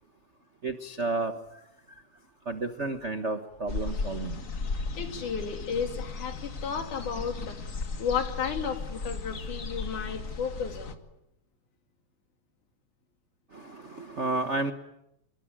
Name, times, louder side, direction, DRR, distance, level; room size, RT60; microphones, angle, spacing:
voice 1, 0.6-1.4 2.5-4.4 13.5-14.7, right 3 dB, 85° right, 9 dB, 0.6 m, -31 dB
sound 1, 3.7-10.9, left 4 dB, 35° left, 1.4 m, -36 dB
voice 2, 5.0-7.6 8.0-11.0, left 6 dB, 75° left, 7 dB, 4.1 m, -33 dB
27.0 x 22.0 x 9.9 m, 0.85 s
omnidirectional pair, 3.5 m